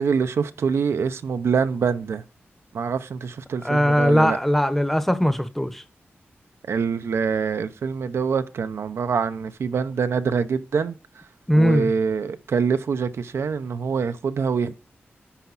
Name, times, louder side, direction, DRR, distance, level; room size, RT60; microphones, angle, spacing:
voice 1, 0.0-2.2 2.7-4.4 6.7-11.0 11.5-14.7, right 6 dB, 85° right, 0.7 m, -25 dB
voice 2, 3.6-5.8 11.5-11.9, equal, 5° left, 0.9 m, -20 dB
9.8 x 5.8 x 4.0 m
wide cardioid pair, 75°, 4 cm